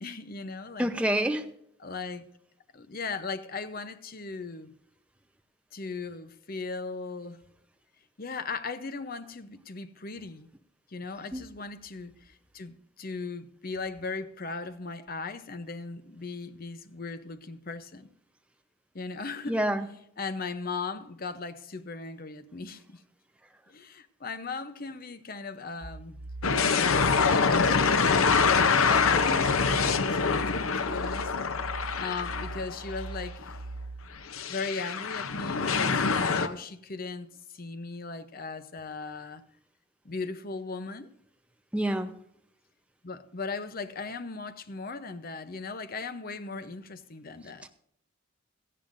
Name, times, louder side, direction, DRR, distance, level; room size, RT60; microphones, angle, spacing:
voice 1, 0.0-0.9 1.8-2.3 2.7-4.7 5.7-7.4 8.2-10.5 10.9-18.1 18.9-19.7 20.2-23.0 23.7-26.2 26.7-28.3 28.6-31.3 32.0-33.5 34.5-39.4 40.0-41.1 43.0-47.7, left 4 dB, 45° left, 0.8 m, -38 dB
voice 2, 0.8-1.5 11.3-11.4 19.5-19.8 41.7-42.1, right 1 dB, 5° right, 0.7 m, -27 dB
sound 1, 25.8-34.2, right 2 dB, 35° right, 4.7 m, -41 dB
sound 2, 26.4-33.0 33.4-33.5 34.3-36.5, left 5 dB, 85° left, 0.8 m, -25 dB
17.5 x 13.5 x 2.6 m
head